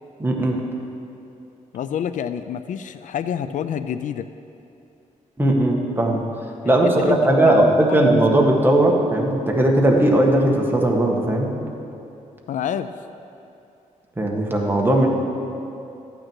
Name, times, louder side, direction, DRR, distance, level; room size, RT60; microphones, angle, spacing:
voice 1, 0.2-0.6 5.4-6.2 6.6-11.5 14.2-15.1, right 1 dB, 15° right, 0 dB, 1.6 m, -18 dB
voice 2, 1.7-4.3 6.6-7.6 7.9-8.0 12.5-12.9, left 9 dB, 65° left, 11 dB, 0.4 m, -28 dB
14.0 x 8.8 x 4.7 m, 2.7 s
cardioid pair, 110°, 14 cm